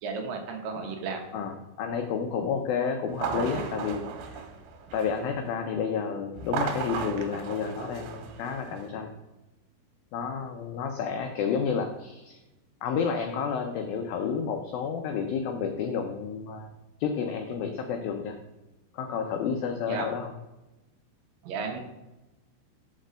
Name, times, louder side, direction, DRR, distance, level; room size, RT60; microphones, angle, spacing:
voice 1, 0.0-1.2 19.9-20.1 21.4-21.8, right 4 dB, 70° right, 3 dB, 2.2 m, -33 dB
voice 2, 1.3-4.4 4.9-9.1 10.1-12.4 12.8-16.7 17.0-18.4 18.9-20.3, left 6 dB, 80° left, 4 dB, 2.1 m, -30 dB
sound 1, 3.1-5.3 6.4-8.9, right 6 dB, 90° right, 3.2 m, -35 dB
6.4 x 5.3 x 6.2 m, 1.0 s
omnidirectional pair, 4.9 m